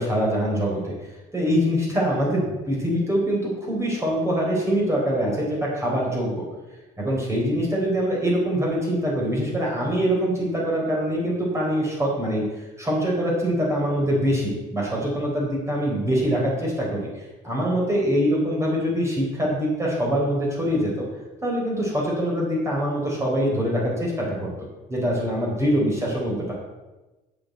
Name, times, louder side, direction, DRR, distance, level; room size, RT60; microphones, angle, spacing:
voice 1, 0.0-6.4 7.0-12.4 12.8-21.0 21.4-24.5 24.9-26.5, equal, 15° right, -4 dB, 4.1 m, -24 dB
8.6 x 6.1 x 8.1 m, 1.1 s
cardioid pair, 110°, 17 cm